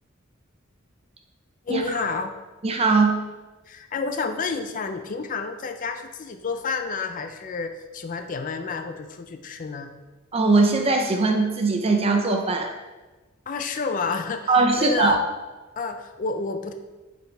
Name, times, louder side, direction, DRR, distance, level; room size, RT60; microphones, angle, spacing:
voice 1, 1.7-2.4 3.7-9.9 13.5-15.2 15.8-16.7, left 4 dB, 40° left, 7 dB, 0.4 m, -30 dB
voice 2, 2.6-3.2 10.3-12.7 14.5-15.2, right 3 dB, 30° right, 4 dB, 0.5 m, -20 dB
9.5 x 4.2 x 3.3 m, 1.2 s
head